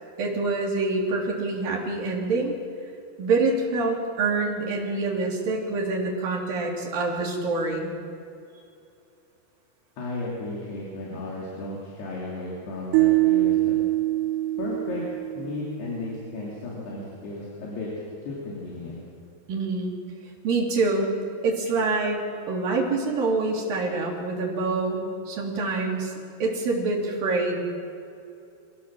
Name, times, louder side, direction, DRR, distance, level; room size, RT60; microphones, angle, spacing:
voice 1, 0.2-2.6 3.2-7.9 19.5-19.9 20.4-21.1 21.4-26.1 26.4-27.7, right 3 dB, 60° right, -2 dB, 4.8 m, -26 dB
voice 2, 10.0-13.8 14.6-19.0, left 2 dB, 70° left, -5 dB, 5.1 m, -34 dB
sound 1, 12.9-16.1, right 17 dB, 85° right, 2.8 m, -24 dB
25.5 x 15.5 x 7.5 m, 2.6 s
omnidirectional pair, 4.8 m